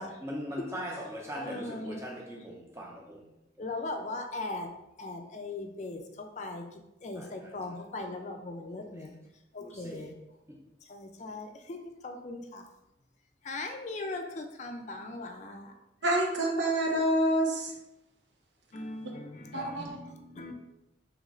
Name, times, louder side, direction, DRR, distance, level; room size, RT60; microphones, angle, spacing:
voice 1, 0.0-3.2 7.2-7.3 8.7-8.8 9.6-10.0, equal, 15° right, 0.7 m, -40 dB
voice 2, 1.3-2.1 3.6-4.7 5.0-9.2 9.5-10.1 10.8-12.7 13.4-15.7 18.7-20.5, left 2 dB, 40° left, 0.4 m, -39 dB
voice 3, 16.0-17.7 19.5-20.0, right 1 dB, 85° right, 0.8 m, -27 dB
3.1 x 3.1 x 3.7 m
head